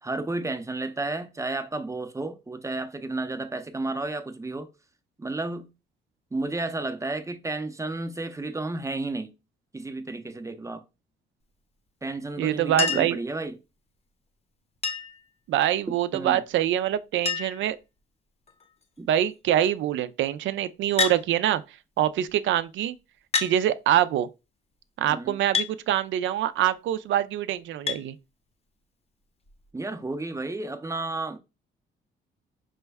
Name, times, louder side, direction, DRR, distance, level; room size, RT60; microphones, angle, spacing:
voice 1, 0.0-4.7 5.2-5.7 6.3-9.3 9.7-10.8 12.0-13.5 15.9-16.4 19.0-19.1 25.1-25.4 29.7-31.4, right 2 dB, 15° right, 0.5 m, -32 dB
voice 2, 12.4-13.2 15.5-17.8 19.1-21.6 22.0-23.0 23.4-24.3 25.0-28.2, right 11 dB, 75° right, 0.4 m, -25 dB
Chink clink, 12.8-13.2 14.8-15.2 16.6-16.7 16.9-17.0 17.3-17.7 18.5-18.8 21.0-21.2 22.3-22.4 23.3-23.6 25.5-25.7 27.9-28.0 29.5-29.6, left 6 dB, 30° left, 0.7 m, -27 dB
5.1 x 2.2 x 3.4 m
cardioid pair, 90°, 20 cm